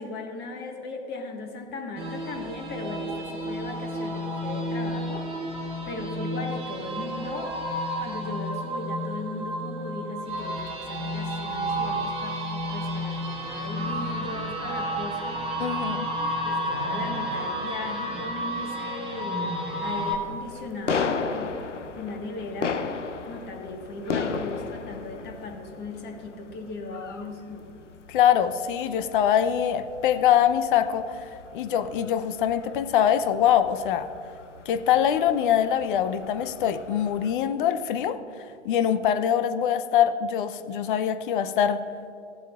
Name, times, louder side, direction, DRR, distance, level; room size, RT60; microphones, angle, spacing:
voice 1, 0.0-5.3 5.9-7.5 8.0-15.4 16.4-19.5 19.8-21.6 21.9-22.8 23.3-27.7, left 3 dB, 30° left, 2 dB, 1.5 m, -37 dB
sound 1, 2.0-20.2, equal, 15° right, 1.6 m, -31 dB
voice 2, 15.6-16.1 28.1-34.1 34.7-38.2 38.6-41.8, left 9 dB, 45° left, 10 dB, 0.6 m, -23 dB
sound 2, 19.4-37.3, left 5 dB, 85° left, 0.7 m, -36 dB
15.0 x 8.0 x 2.4 m, 2.7 s
figure-of-eight pair, 110°, 35 cm